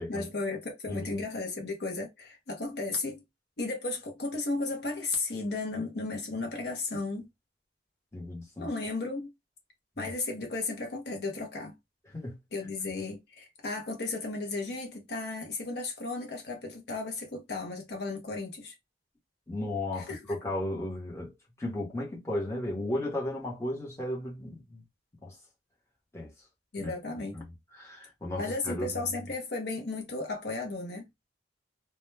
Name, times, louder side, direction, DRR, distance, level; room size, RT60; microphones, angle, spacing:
voice 1, 0.1-3.2 3.6-7.3 8.6-9.3 10.0-11.8 12.5-18.7 20.0-20.2 26.7-27.3 28.4-31.1, left 3 dB, 55° left, 0.7 m, -34 dB
voice 2, 0.9-1.2 8.1-8.7 10.0-10.1 12.1-12.4 19.5-24.8 25.2-25.4 26.1-26.5 26.8-26.9 27.3-29.0, left 1 dB, 15° left, 0.9 m, -35 dB
2.2 x 2.1 x 3.1 m
head